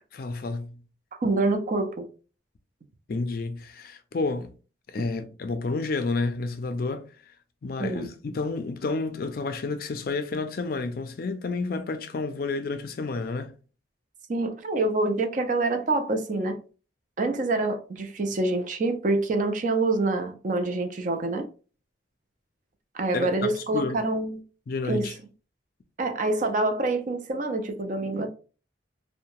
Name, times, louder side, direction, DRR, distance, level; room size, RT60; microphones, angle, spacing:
voice 1, 0.1-0.8 3.1-4.5 4.9-7.0 7.6-13.5 23.1-24.0 24.7-25.1, left 3 dB, 50° left, 0.4 m, -30 dB
voice 2, 1.2-2.1 7.8-8.1 14.3-16.6 17.2-21.5 22.9-24.4 24.9-25.1 26.0-28.3, right 2 dB, 40° right, 0.4 m, -26 dB
2.7 x 2.1 x 2.9 m
head